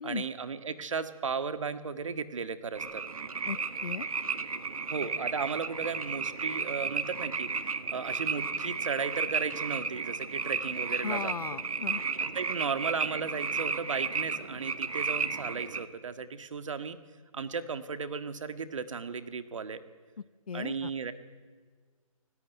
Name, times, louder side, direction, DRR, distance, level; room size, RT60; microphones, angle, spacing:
voice 1, 0.0-3.0 4.9-7.5 7.9-11.3 12.2-17.0 17.3-19.8 20.5-21.1, right 5 dB, 60° right, 11 dB, 1.7 m, -35 dB
sound 1, 2.7-15.8, right 5 dB, 75° right, 1.9 m, -33 dB
voice 2, 3.5-4.1 11.0-12.0 20.5-20.9, left 6 dB, 90° left, 22 dB, 0.7 m, -36 dB
26.0 x 17.5 x 9.1 m, 1.5 s
hypercardioid pair, 165°, 18 cm